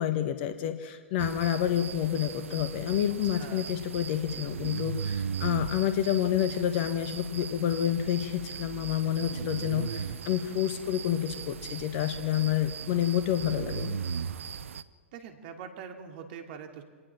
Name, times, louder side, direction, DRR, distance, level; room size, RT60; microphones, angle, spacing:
voice 1, 0.0-14.0, left 11 dB, 50° left, 9 dB, 1.4 m, -29 dB
sound 1, 1.2-14.8, right 7 dB, 75° right, 0.8 m, -37 dB
voice 2, 3.1-3.7 9.2-9.9 15.1-16.8, right 7 dB, 50° right, 5 dB, 2.8 m, -44 dB
25.5 x 19.5 x 6.0 m, 1.5 s
hypercardioid pair, 105°, 7 cm